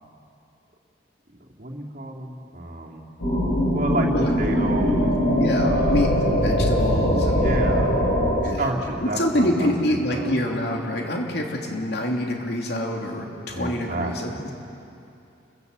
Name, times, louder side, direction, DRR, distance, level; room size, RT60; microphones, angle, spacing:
voice 1, 1.6-3.1 3.7-5.1 5.6-6.1 7.2-8.0 8.4-10.4 13.5-14.5, right 1 dB, 45° right, -2 dB, 3.0 m, -30 dB
sound 1, 3.2-8.3, equal, 90° left, 8.0 m, -21 dB
voice 2, 5.4-7.6 8.4-8.7 9.0-14.3, left 1 dB, 60° left, 0 dB, 3.1 m, -26 dB
30.0 x 15.0 x 8.2 m, 2.7 s
head